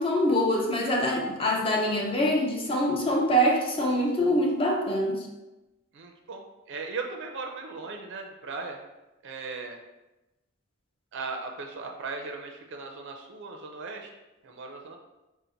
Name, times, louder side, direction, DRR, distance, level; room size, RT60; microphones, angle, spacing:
voice 1, 0.0-5.3, equal, 25° left, -1 dB, 0.6 m, -24 dB
voice 2, 5.9-6.4 6.7-8.8 9.2-9.8 11.1-14.1 14.4-15.0, right 4 dB, 60° right, 3 dB, 0.5 m, -37 dB
3.9 x 2.1 x 4.4 m, 1.0 s
head